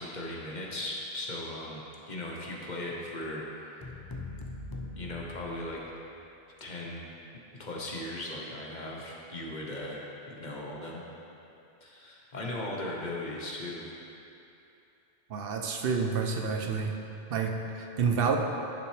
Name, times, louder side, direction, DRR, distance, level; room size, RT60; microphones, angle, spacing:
voice 1, 0.0-1.8 2.1-3.8 4.9-5.8 6.6-7.1 7.5-10.0 10.3-11.0 11.8-13.8, left 1 dB, 50° left, -3 dB, 1.0 m, -38 dB
sound 1, 3.8-6.1, left 2 dB, 35° left, 0.4 m, -42 dB
voice 2, 15.3-17.0 17.3-18.4, right 5 dB, 65° right, 3 dB, 0.8 m, -29 dB
10.5 x 5.6 x 3.2 m, 2.8 s
omnidirectional pair, 1.0 m